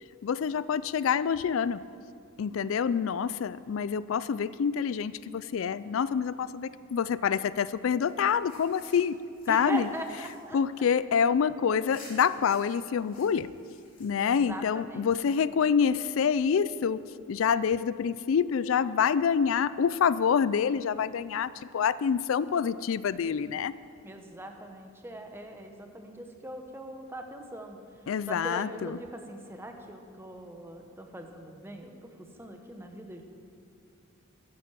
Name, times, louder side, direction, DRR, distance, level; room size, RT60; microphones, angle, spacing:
voice 1, 0.2-1.8 2.4-9.2 9.5-9.9 10.5-13.5 14.0-17.0 17.3-23.7 28.1-29.0, left 7 dB, 75° left, 17 dB, 0.4 m, -27 dB
sound 1, 8.1-11.5 11.9-14.6, left 3 dB, 40° left, 3.5 m, -54 dB
voice 2, 9.5-10.6 14.2-15.1 24.0-27.8 28.3-32.1 32.4-33.2, right 1 dB, 10° right, 4 dB, 1.2 m, -41 dB
13.5 x 10.5 x 7.5 m, 2.4 s
head